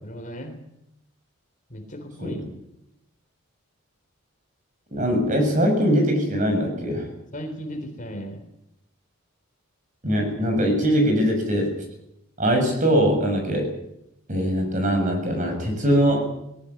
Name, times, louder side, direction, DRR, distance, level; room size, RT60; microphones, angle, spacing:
voice 1, 0.0-0.6 1.7-2.5 7.3-8.4, equal, 35° left, 5 dB, 3.5 m, -35 dB
voice 2, 4.9-7.1 10.0-11.7 12.4-13.7 14.3-16.3, equal, 35° right, 4 dB, 7.0 m, -21 dB
19.5 x 17.5 x 9.7 m, 0.81 s
head